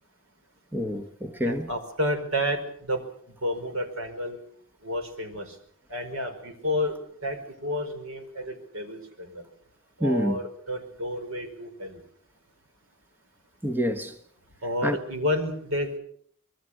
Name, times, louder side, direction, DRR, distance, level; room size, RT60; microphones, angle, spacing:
voice 1, 0.7-1.7 10.0-10.4 13.6-14.1 14.8-15.0, equal, 10° right, 1.2 m, -27 dB
voice 2, 1.4-3.0 3.3-4.4 4.8-5.5 5.9-6.9 7.2-9.4 10.0-12.0 14.6-16.0, left 1 dB, 75° right, 5.0 m, -30 dB
26.0 x 21.5 x 6.3 m
head